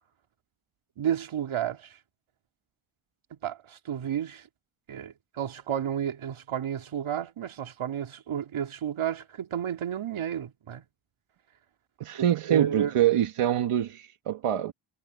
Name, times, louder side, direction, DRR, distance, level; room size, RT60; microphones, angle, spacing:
voice 1, 1.0-2.0 3.3-4.5 4.9-10.8 12.1-12.9, right 9 dB, 70° right, 2.4 m, -32 dB
voice 2, 12.0-14.7, right 11 dB, 90° right, 1.8 m, -25 dB
cardioid pair, 85°, 50 cm